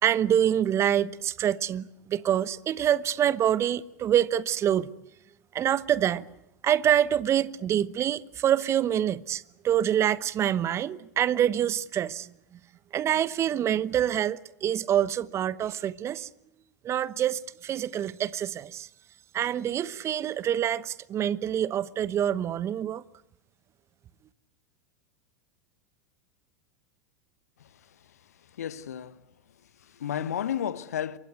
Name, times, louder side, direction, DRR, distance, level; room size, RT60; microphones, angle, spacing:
voice 1, 0.0-4.9 5.5-6.2 6.6-12.3 12.9-16.3 16.8-18.9 19.3-23.0, right 10 dB, 30° right, 1.0 m, -26 dB
voice 2, 27.6-29.2 29.8-31.2, left 9 dB, 70° left, 1.3 m, -34 dB
27.0 x 24.0 x 8.4 m
figure-of-eight pair, 85°, 9 cm